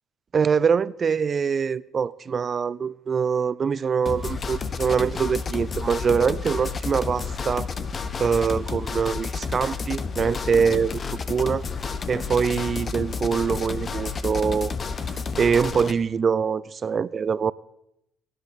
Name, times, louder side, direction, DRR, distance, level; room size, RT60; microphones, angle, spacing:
voice 1, 0.3-7.7 8.2-11.0 11.3-11.7 12.1-14.7 15.1-17.5, right 6 dB, 40° right, 0.4 m, -24 dB
sound 1, 4.1-15.9, left 5 dB, 35° left, 0.8 m, -31 dB
sound 2, 10.4-15.7, right 3 dB, 25° right, 2.0 m, -50 dB
18.5 x 10.5 x 3.5 m
supercardioid pair, 80°, 0 cm